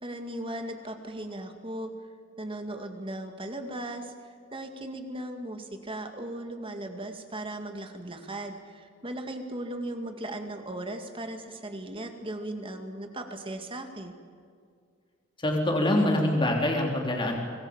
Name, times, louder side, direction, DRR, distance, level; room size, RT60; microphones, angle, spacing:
voice 1, 0.0-1.9 2.4-14.1, right 1 dB, 25° right, 5 dB, 2.2 m, -37 dB
voice 2, 15.4-17.4, left 1 dB, 25° left, 0 dB, 3.4 m, -25 dB
25.0 x 20.5 x 7.3 m, 2.2 s
head